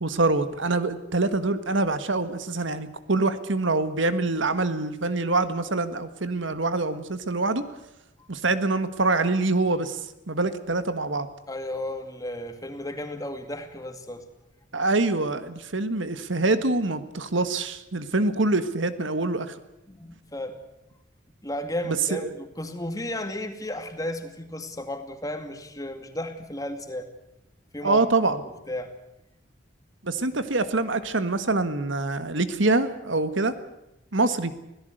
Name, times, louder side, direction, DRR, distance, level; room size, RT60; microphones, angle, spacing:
voice 1, 0.0-7.6 8.3-11.3 14.7-19.6 21.8-22.3 27.8-28.4 30.0-33.5 34.1-34.5, right 3 dB, 75° right, 11 dB, 1.6 m, -25 dB
voice 2, 11.5-14.2 19.9-20.6 21.4-27.1 27.7-28.0 28.7-28.9, left 1 dB, 20° left, 6 dB, 2.3 m, -34 dB
25.5 x 17.0 x 8.0 m, 0.91 s
head